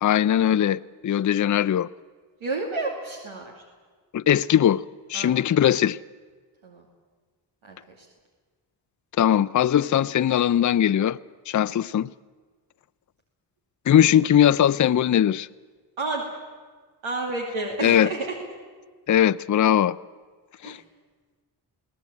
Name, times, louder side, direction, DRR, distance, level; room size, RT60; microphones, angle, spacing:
voice 1, 0.0-1.9 4.1-4.8 5.1-6.0 9.2-11.2 11.5-12.1 13.9-15.5 17.8-18.1 19.1-20.0 20.6-20.8, left 10 dB, 40° left, 0.5 m, -20 dB
voice 2, 2.4-3.5 5.1-5.3 6.6-6.8 7.6-8.0 16.0-16.2 17.0-18.3 20.6-20.8, right 3 dB, 85° right, 2.7 m, -30 dB
22.0 x 17.0 x 8.5 m
cardioid pair, 60°, 47 cm